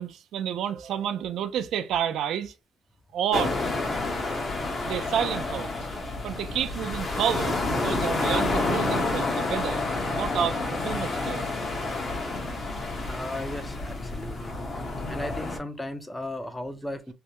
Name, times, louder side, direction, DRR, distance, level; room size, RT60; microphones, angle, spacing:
voice 1, 0.0-2.5 3.1-3.6 4.8-5.7 6.2-11.5, right 9 dB, 80° right, 0.4 m, -30 dB
sound 1, 3.3-15.6, left 2 dB, 40° left, 1.0 m, -29 dB
voice 2, 13.0-14.5 15.0-17.1, left 1 dB, 10° left, 0.5 m, -36 dB
3.3 x 2.1 x 2.8 m
cardioid pair, 90°, 0 cm